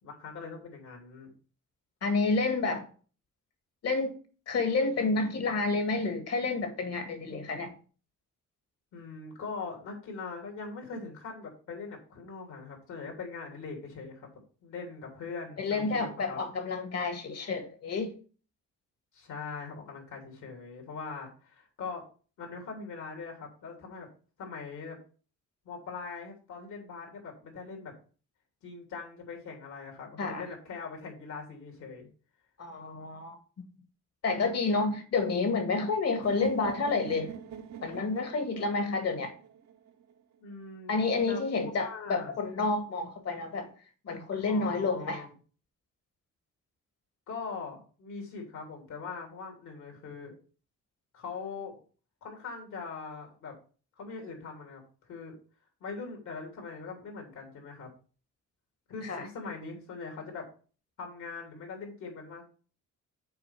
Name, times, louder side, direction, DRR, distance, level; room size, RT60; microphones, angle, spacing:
voice 1, 0.0-1.3 8.9-14.3 14.6-16.4 19.1-22.0 22.4-24.1 24.4-25.0 25.6-27.9 28.6-32.1 40.4-40.9 41.3-42.3 44.4-45.3 47.3-50.3 51.1-51.7 52.2-53.5 54.0-54.8 55.1-55.3 55.8-57.9 58.9-60.5 61.0-62.5, left 4 dB, 75° left, 3.3 m, -41 dB
voice 2, 2.0-2.9 3.8-4.1 4.5-7.8 15.6-18.1 30.2-30.4 32.6-33.4 34.2-37.3 37.8-39.3 40.9-43.7 44.0-45.2 59.0-59.3, left 3 dB, 55° left, 1.8 m, -29 dB
sound 1, 36.2-40.2, right 8 dB, 60° right, 1.0 m, -45 dB
6.9 x 4.3 x 5.7 m
cardioid pair, 90°, 30 cm